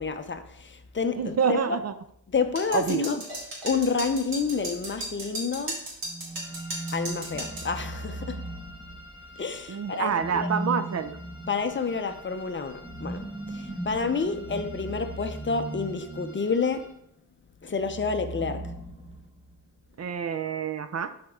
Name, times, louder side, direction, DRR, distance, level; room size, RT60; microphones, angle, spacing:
voice 1, 0.0-1.8 2.3-3.2 3.6-5.8 6.9-8.4 9.4-10.5 11.5-16.9 17.6-18.7, left 5 dB, 30° left, 0.6 m, -29 dB
voice 2, 1.2-1.9 2.7-3.1 9.7-11.2 20.0-21.1, right 6 dB, 45° right, 0.5 m, -27 dB
sound 1, 2.6-7.7, right 1 dB, 70° right, 2.7 m, -35 dB
sound 2, 6.0-9.4 10.0-16.6 17.6-19.6, right 1 dB, 15° right, 1.3 m, -38 dB
sound 3, 6.4-16.9, left 1 dB, 15° left, 2.0 m, -50 dB
11.5 x 4.3 x 3.6 m
wide cardioid pair, 125°, 37 cm